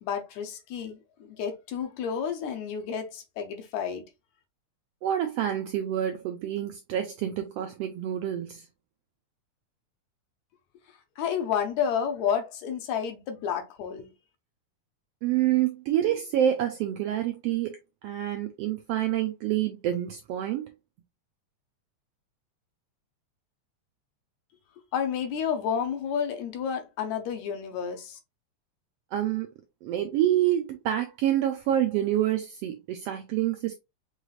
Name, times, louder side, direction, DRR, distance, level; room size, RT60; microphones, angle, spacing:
voice 1, 0.0-4.0 11.2-14.1 24.9-28.2, left 7 dB, 75° left, 2.1 m, -30 dB
voice 2, 5.0-8.7 15.2-17.8 18.0-20.7 29.1-29.5 29.8-33.7, right 11 dB, 85° right, 1.4 m, -27 dB
5.5 x 3.2 x 2.4 m
omnidirectional pair, 3.3 m